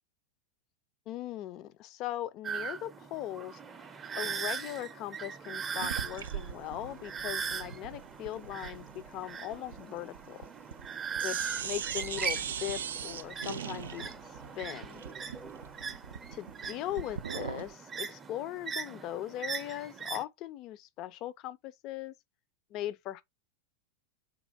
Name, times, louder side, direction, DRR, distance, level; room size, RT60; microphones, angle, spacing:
voice 1, 1.1-3.6 4.2-10.5 11.2-14.2 14.6-15.0 16.3-22.1 22.7-23.2, left 13 dB, 40° left, 0.5 m, -39 dB
sound 1, 2.4-20.2, right 6 dB, 20° right, 0.6 m, -40 dB
sound 2, 5.8-10.9 11.2-17.7, right 8 dB, 65° right, 0.4 m, -40 dB
4.1 x 2.8 x 3.8 m
figure-of-eight pair, 90°, 0 cm